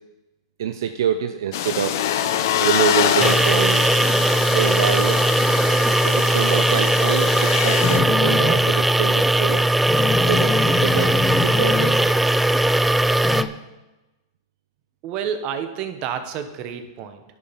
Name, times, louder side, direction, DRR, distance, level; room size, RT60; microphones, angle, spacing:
voice 1, 0.6-2.0 2.6-3.9 4.5-5.2 6.0-9.7 10.3-12.0, right 9 dB, 70° right, 8 dB, 0.6 m, -26 dB
sound 1, 1.5-8.0, left 10 dB, 65° left, 0.8 m, -24 dB
sound 2, 3.2-13.4, right 1 dB, 5° right, 0.3 m, -19 dB
sound 3, 7.8-8.7 9.2-9.3 9.6-9.7 9.9-12.2 12.5-13.5, left 4 dB, 15° left, 0.8 m, -25 dB
voice 2, 15.0-17.2, right 8 dB, 45° right, 8 dB, 1.1 m, -29 dB
11.0 x 5.5 x 5.9 m, 1.1 s
hypercardioid pair, 110°, 2 cm